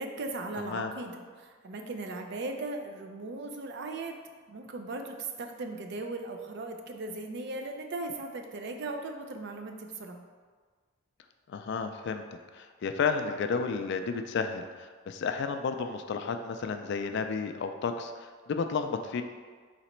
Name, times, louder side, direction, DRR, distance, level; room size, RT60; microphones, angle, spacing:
voice 1, 0.0-4.2 4.5-10.2, right 2 dB, 55° right, 4 dB, 0.4 m, -38 dB
voice 2, 11.5-19.2, left 5 dB, 55° left, 7 dB, 0.3 m, -32 dB
4.1 x 2.9 x 4.3 m, 1.5 s
head